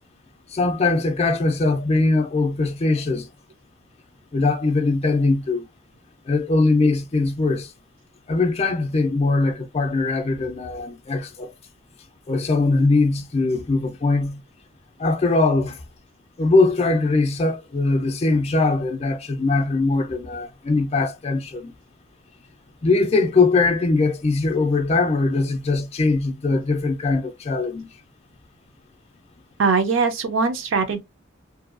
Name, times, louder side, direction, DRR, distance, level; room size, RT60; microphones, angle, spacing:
voice 1, 0.5-3.2 4.3-5.6 6.3-7.7 8.3-11.5 12.3-14.4 15.0-15.8 16.4-21.7 22.8-27.9, left 3 dB, 30° left, 0.4 m, -21 dB
voice 2, 29.6-31.0, right 4 dB, 70° right, 0.5 m, -21 dB
2.6 x 2.2 x 2.4 m
head